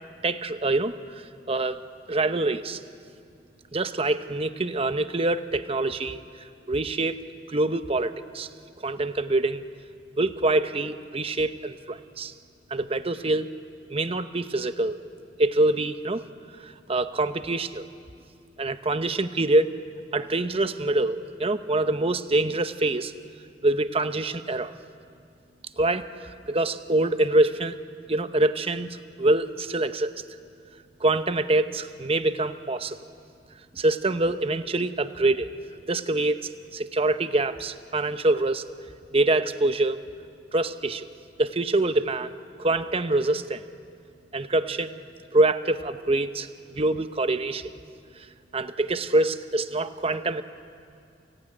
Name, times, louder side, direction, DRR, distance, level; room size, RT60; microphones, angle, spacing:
voice 1, 0.2-1.8 2.1-2.8 3.7-6.2 6.7-7.2 7.5-8.5 8.8-9.6 10.2-12.3 12.7-13.5 13.9-15.0 15.4-16.2 16.6-17.9 18.6-19.7 20.1-23.1 23.6-24.7 25.8-27.7 28.1-30.2 31.0-33.0 33.7-35.5 35.9-38.6 39.1-40.0 40.5-41.1 41.4-43.6 44.3-45.0 45.3-47.7 48.2-48.3 48.5-50.4, right 2 dB, 35° right, 10 dB, 0.9 m, -25 dB
29.5 x 17.0 x 9.9 m, 2.4 s
head